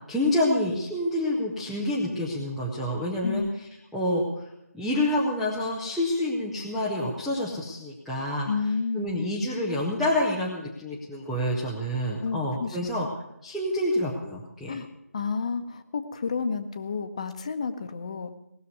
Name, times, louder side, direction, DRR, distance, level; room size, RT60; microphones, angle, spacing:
voice 1, 0.1-3.5 3.9-4.5 4.7-8.5 8.9-13.1 13.4-14.7, left 1 dB, ahead, -9 dB, 0.5 m, -27 dB
voice 2, 8.5-9.2 12.2-13.0 14.7-14.9 15.1-18.3, left 5 dB, 25° left, 9 dB, 0.9 m, -30 dB
19.0 x 6.8 x 9.4 m, 0.86 s
figure-of-eight pair, 165°, 9 cm